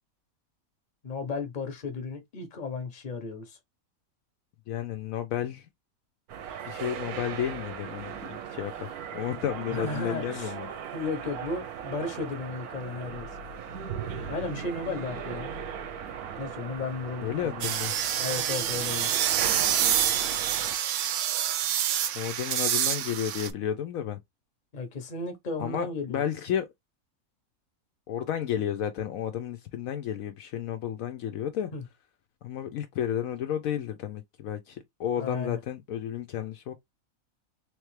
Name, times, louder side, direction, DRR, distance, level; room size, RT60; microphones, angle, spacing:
voice 1, 1.0-3.6 9.7-10.5 10.9-13.3 14.3-15.5 16.4-17.7 18.2-19.1 24.7-26.2 31.7-31.8 35.2-35.6, left 3 dB, 35° left, 1.0 m, -34 dB
voice 2, 4.7-5.7 6.6-10.7 17.2-17.9 22.1-24.2 25.6-26.7 28.1-31.7 32.4-36.7, left 10 dB, 75° left, 0.9 m, -32 dB
sound 1, 6.3-20.8, right 8 dB, 85° right, 1.2 m, -38 dB
sound 2, 17.6-23.5, right 10 dB, 65° right, 0.8 m, -27 dB
3.5 x 3.2 x 3.1 m
omnidirectional pair, 1.5 m